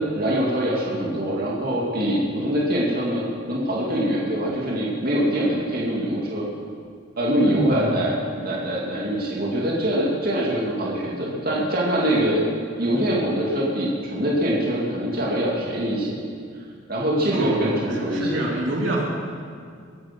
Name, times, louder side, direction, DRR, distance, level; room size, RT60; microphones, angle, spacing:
voice 1, 0.1-6.5 7.2-12.4 12.8-16.2 16.9-18.4, right 1 dB, 50° right, -4 dB, 2.5 m, -23 dB
voice 2, 7.4-8.0 17.3-19.1, right 1 dB, 75° right, -2 dB, 2.8 m, -27 dB
22.5 x 9.8 x 6.1 m, 2.1 s
head